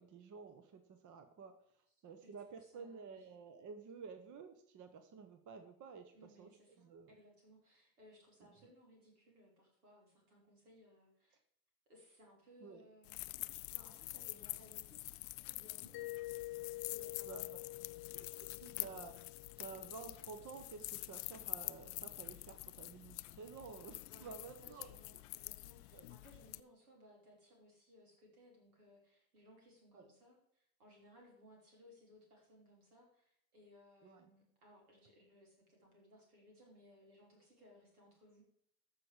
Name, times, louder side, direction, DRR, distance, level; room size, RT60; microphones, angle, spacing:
voice 1, 0.0-1.6 2.0-6.5 6.8-7.1 12.6-12.8 17.2-17.6 18.1-24.9 25.9-26.1 29.9-30.1 34.0-34.3, right 5 dB, 45° right, 8 dB, 1.1 m, -52 dB
voice 2, 2.2-3.3 6.1-11.4 11.9-13.2 13.5-16.1 16.9-18.0 24.1-38.4, left 1 dB, 90° right, -2 dB, 3.6 m, -64 dB
sound 1, 13.0-26.6, left 24 dB, 65° left, 0.5 m, -47 dB
Mallet percussion, 15.9-20.5, left 19 dB, 50° left, 0.9 m, -48 dB
14.0 x 4.9 x 5.0 m, 0.71 s
hypercardioid pair, 70°, 43 cm